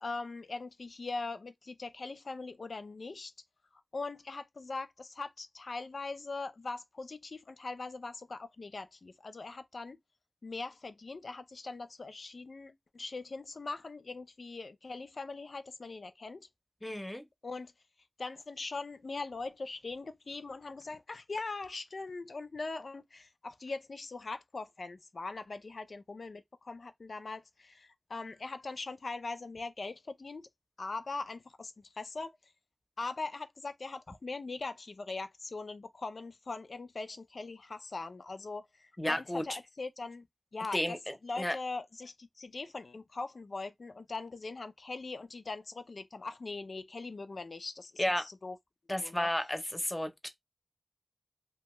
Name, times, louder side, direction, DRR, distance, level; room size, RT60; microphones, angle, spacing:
voice 1, 0.0-3.3 3.7-10.0 10.4-16.5 17.4-17.7 18.2-30.5 30.8-32.3 33.0-40.3 40.5-41.0 41.2-48.6 49.0-49.3, left 3 dB, 80° left, 0.4 m, -41 dB
voice 2, 16.8-17.2 39.0-39.4 40.7-41.6 48.0-48.3 48.9-50.3, left 1 dB, 20° left, 0.7 m, -32 dB
2.6 x 2.3 x 3.0 m
wide cardioid pair, 55°, 0 cm